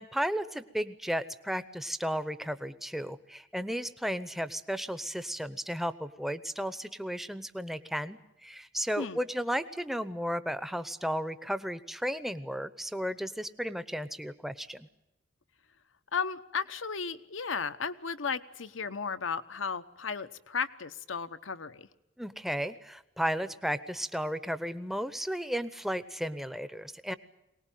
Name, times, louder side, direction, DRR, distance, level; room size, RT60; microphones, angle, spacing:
voice 1, 0.0-14.9 22.2-27.2, equal, ahead, 13 dB, 0.8 m, -34 dB
voice 2, 16.1-21.9, left 5 dB, 85° left, 10 dB, 1.1 m, -34 dB
23.5 x 19.0 x 9.2 m, 0.93 s
head